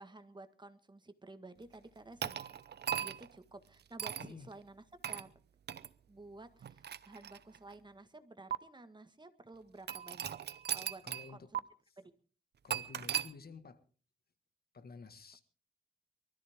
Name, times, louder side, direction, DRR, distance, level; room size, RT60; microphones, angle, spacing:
voice 1, 0.0-2.4 3.0-5.3 6.1-10.3 10.7-11.0 11.3-11.6 12.0-12.1, right 2 dB, 25° right, 10 dB, 1.6 m, -53 dB
Ice in glass, 2.2-3.3 4.0-4.3 5.0-5.3 5.7-5.9 6.6-7.7 8.5-8.6 9.9-11.3 11.5-11.6 12.7-13.3, right 9 dB, 70° right, 0.7 m, -38 dB
voice 2, 4.2-4.5 11.0-11.5 11.9-12.0 12.6-13.8 14.7-15.4, left 4 dB, 60° left, 11 dB, 1.7 m, -51 dB
23.0 x 13.5 x 3.6 m, 0.38 s
cardioid pair, 85°, 18 cm